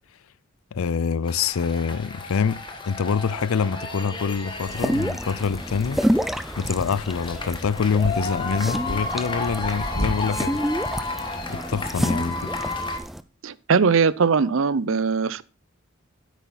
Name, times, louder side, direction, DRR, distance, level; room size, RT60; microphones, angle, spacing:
voice 1, 0.7-6.0 6.6-10.6 11.5-12.5, left 6 dB, 85° left, 0.5 m, -25 dB
sound 1, 1.2-13.0, left 2 dB, 25° left, 1.5 m, -33 dB
sound 2, 4.7-13.2, equal, ahead, 0.4 m, -28 dB
voice 2, 13.4-15.4, right 5 dB, 70° right, 0.6 m, -20 dB
9.9 x 8.3 x 4.1 m
head